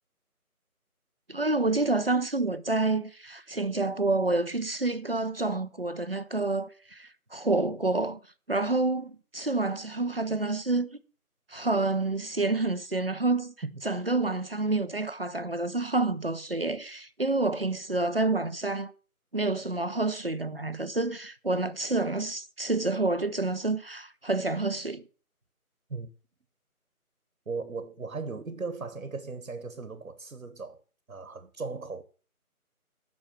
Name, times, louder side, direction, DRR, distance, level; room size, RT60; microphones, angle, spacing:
voice 1, 1.3-8.2 8.5-11.0 11.5-13.5 13.8-18.9 19.3-25.0, right 2 dB, 40° right, 0.6 m, -28 dB
voice 2, 27.5-30.8 31.1-32.0, right 4 dB, 65° right, 1.3 m, -37 dB
7.8 x 6.3 x 7.6 m
figure-of-eight pair, 165°, 45 cm